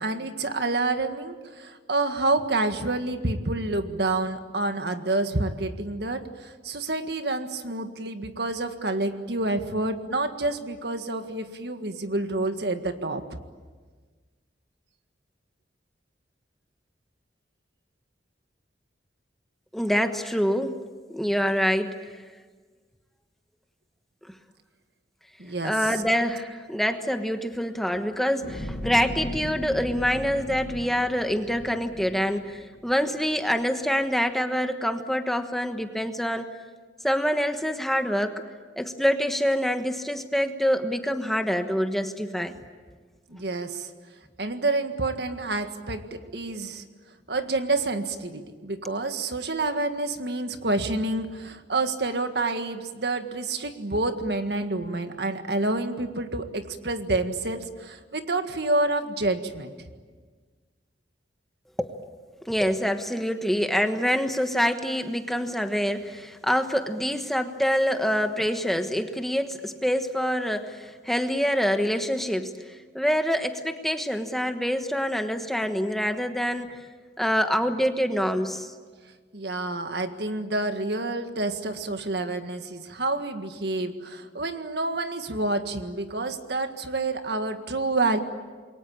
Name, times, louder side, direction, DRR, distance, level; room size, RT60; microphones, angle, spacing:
voice 1, 0.0-13.2 25.4-26.0 43.3-43.9 44.4-46.8 47.3-59.9 79.3-88.2, right 2 dB, 65° right, 7 dB, 1.8 m, -28 dB
voice 2, 19.7-20.8 21.1-22.2 25.6-36.5 37.0-38.4 38.8-42.5 61.8-62.0 62.4-72.5 72.9-76.8 77.2-78.7, equal, ahead, 6 dB, 1.2 m, -26 dB
sound 1, 28.4-32.9 33.4-33.5, equal, 45° left, 2.1 m, -37 dB
27.5 x 23.0 x 8.8 m, 1.4 s
head